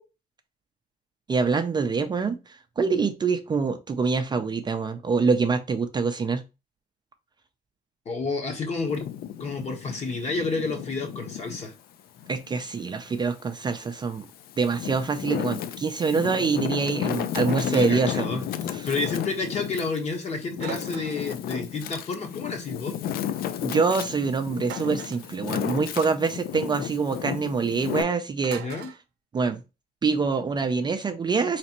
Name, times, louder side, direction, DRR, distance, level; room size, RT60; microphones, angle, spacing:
voice 1, 1.3-6.5 12.3-14.3 14.6-18.4 18.7-18.9 23.6-28.6 29.3-29.6 30.0-31.6, right 4 dB, 25° right, 0.4 m, -25 dB
voice 2, 8.0-9.1 9.4-11.7 17.6-18.4 18.8-22.9 28.5-28.9, left 3 dB, 40° left, 1.3 m, -30 dB
Wind, 8.8-11.7 12.2-13.5 14.1-28.0, left 10 dB, 65° left, 0.4 m, -33 dB
sound 1, 17.3-17.8 20.6-21.4 24.6-25.3 28.4-29.0, right 9 dB, 75° right, 0.5 m, -40 dB
4.1 x 3.3 x 2.9 m
cardioid pair, 110°, 17 cm